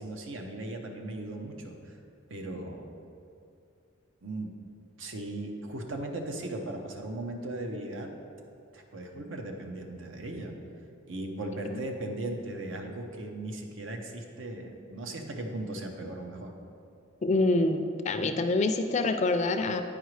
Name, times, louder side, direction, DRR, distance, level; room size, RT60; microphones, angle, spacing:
voice 1, 0.0-2.0 2.3-2.9 4.2-4.5 5.0-8.1 8.7-10.5 11.1-16.5, right 1 dB, 80° right, 2 dB, 0.8 m, -37 dB
voice 2, 17.2-19.8, left 2 dB, 35° left, 7 dB, 0.4 m, -26 dB
9.0 x 4.9 x 3.2 m, 2.5 s
head